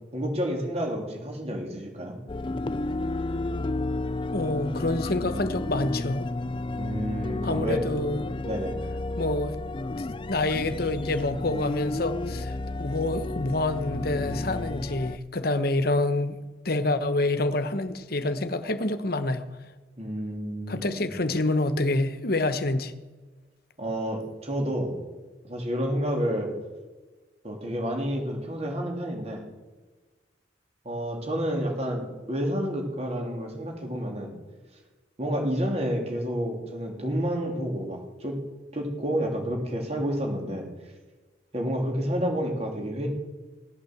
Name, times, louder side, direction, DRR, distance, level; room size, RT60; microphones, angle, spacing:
voice 1, 0.1-2.2 6.8-7.8 8.4-8.8 20.0-21.1 23.8-24.9 25.4-26.5 27.4-29.4 30.8-34.3 35.2-38.4 38.7-40.7 41.5-43.1, equal, 35° right, 3.2 m, -29 dB
sound 1, 2.3-15.2, left 2 dB, 25° left, 0.5 m, -32 dB
voice 2, 4.3-6.3 7.4-8.3 9.2-9.6 10.3-16.4 16.6-19.4 20.7-22.9, left 2 dB, 55° left, 1.1 m, -27 dB
16.5 x 8.8 x 8.0 m
head